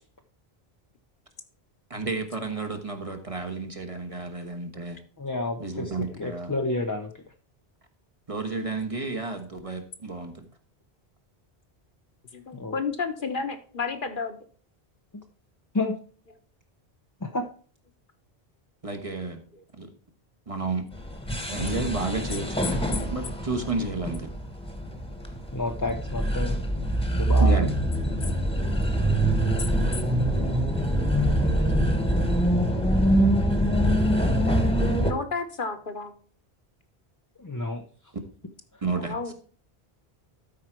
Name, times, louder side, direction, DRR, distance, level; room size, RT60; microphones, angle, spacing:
voice 1, 1.9-5.0 5.6-6.5 8.3-10.4 18.8-19.4 19.8-19.9 20.5-20.8 21.5-22.8 23.1-24.3 27.4-27.7 38.8-39.1, right 3 dB, 35° right, 6 dB, 1.2 m, -31 dB
voice 2, 5.2-5.9 6.2-7.1 12.5-12.7 15.7-16.0 17.2-17.5 25.5-26.6 27.1-27.7 37.4-37.8, left 2 dB, 25° left, 4 dB, 0.5 m, -29 dB
voice 3, 12.3-14.4 19.5-19.6 35.0-36.1 38.9-39.3, left 4 dB, 55° left, 7 dB, 1.2 m, -31 dB
sound 1, 20.9-35.1, right 1 dB, 5° left, 1.2 m, -24 dB
12.5 x 4.8 x 4.5 m, 0.43 s
omnidirectional pair, 1.1 m